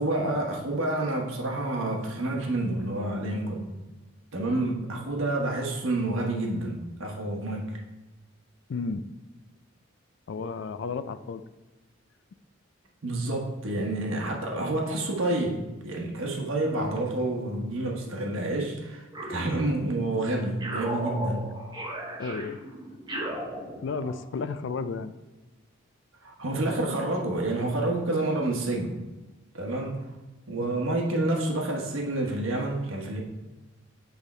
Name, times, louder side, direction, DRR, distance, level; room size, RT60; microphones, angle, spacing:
voice 1, 0.0-3.7 4.3-7.8 13.0-21.5 26.2-28.9 29.5-30.0 30.5-33.2, right 2 dB, 75° right, 0 dB, 1.1 m, -29 dB
voice 2, 8.7-9.0 10.3-11.4 22.2-22.6 23.8-25.1 30.6-30.8, left 4 dB, 60° left, 12 dB, 0.3 m, -32 dB
sound 1, 19.1-20.1 20.6-24.2, right 1 dB, 20° right, 1.0 m, -36 dB
8.2 x 3.5 x 4.3 m, 1.1 s
head